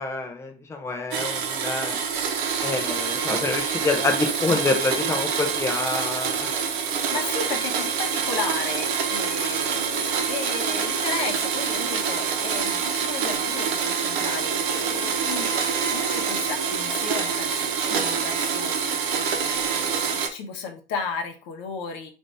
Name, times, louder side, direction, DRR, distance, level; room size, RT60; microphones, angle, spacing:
voice 1, 0.0-2.0 2.6-6.5, left 3 dB, 10° left, 4 dB, 0.6 m, -27 dB
Domestic sounds home sounds, 1.1-20.3, right 6 dB, 55° right, 1.0 m, -26 dB
voice 2, 7.1-22.1, left 5 dB, 40° left, 5 dB, 1.0 m, -34 dB
5.1 x 2.7 x 3.3 m, 0.35 s
hypercardioid pair, 105°, 31 cm